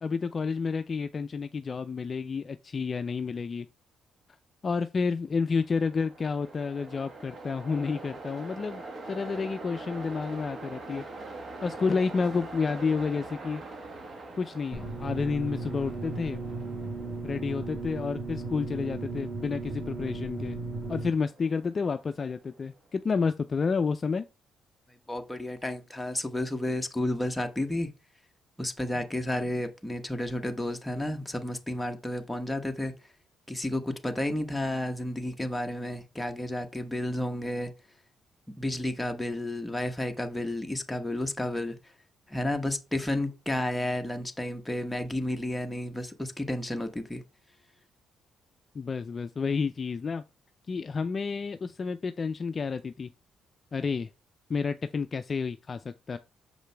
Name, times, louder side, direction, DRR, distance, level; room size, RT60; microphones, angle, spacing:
voice 1, 0.0-3.7 4.6-11.0 11.6-13.6 14.4-16.4 17.2-20.6 20.9-24.2 48.7-50.2 50.7-53.1 53.7-54.1 54.5-56.2, left 5 dB, 40° left, 0.4 m, -30 dB
Train, 5.5-22.7, right 2 dB, 45° right, 1.3 m, -44 dB
sound 1, 14.7-21.1, right 3 dB, 20° right, 2.4 m, -36 dB
voice 2, 25.1-27.9 28.6-32.9 33.5-37.7 38.6-41.8 42.3-47.2, left 1 dB, 10° left, 1.1 m, -31 dB
6.6 x 5.0 x 3.4 m
cardioid pair, 90°, 0 cm